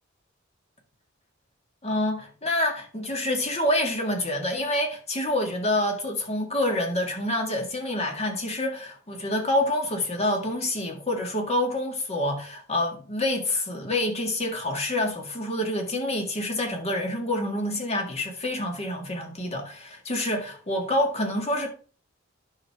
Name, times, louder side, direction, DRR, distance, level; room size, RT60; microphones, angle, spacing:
voice 1, 1.8-21.7, left 1 dB, 30° left, 1.8 m, -27 dB
10.5 x 6.2 x 3.5 m
head